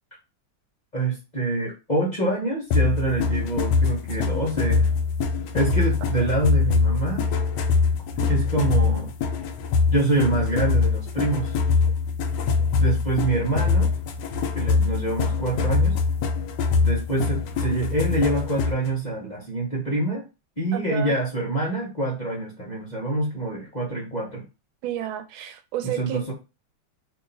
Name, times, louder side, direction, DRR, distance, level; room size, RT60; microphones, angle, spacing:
voice 1, 0.9-4.9 5.5-7.2 8.3-9.1 9.9-11.6 12.8-13.9 14.5-16.0 16.8-20.2 20.6-24.4 25.8-26.3, right 2 dB, 35° left, 0.8 m, -26 dB
sound 1, 2.7-18.9, left 4 dB, 75° left, 1.0 m, -23 dB
voice 2, 20.7-21.1 24.8-26.3, right 11 dB, 90° right, 1.4 m, -31 dB
2.9 x 2.8 x 3.9 m
omnidirectional pair, 2.1 m